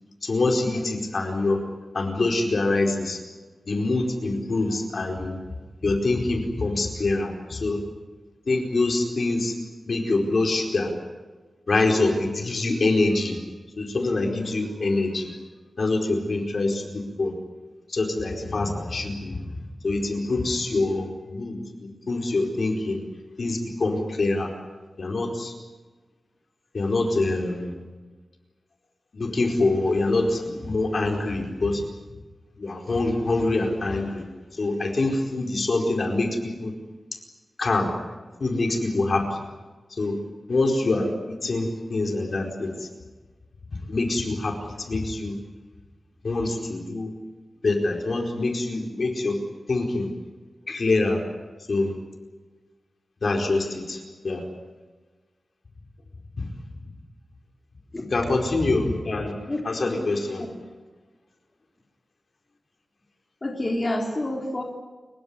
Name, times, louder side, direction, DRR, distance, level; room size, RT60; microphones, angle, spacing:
voice 1, 0.2-1.6 1.9-3.2 3.7-5.4 5.8-7.8 8.5-9.5 9.9-10.9 11.7-13.4 13.8-15.3 15.8-17.3 17.9-19.4 19.8-23.0 23.4-24.5 25.0-25.5 26.7-27.7 29.1-31.8 32.6-34.2 34.6-36.7 37.6-37.9 38.4-39.2 40.0-40.2 40.5-41.1 41.4-42.9 43.9-44.6 44.9-45.3 46.2-47.1 47.6-49.4 49.7-50.1 50.7-51.2 51.7-51.9 53.2-54.0 54.2-54.4 56.4-56.5 58.1-59.4 59.6-60.4, left 2 dB, 55° left, 2 dB, 4.7 m, -25 dB
voice 2, 59.5-60.1 63.4-64.6, left 1 dB, 25° left, 0 dB, 3.8 m, -28 dB
30.0 x 16.5 x 9.8 m, 1.3 s
wide cardioid pair, 140°, 0 cm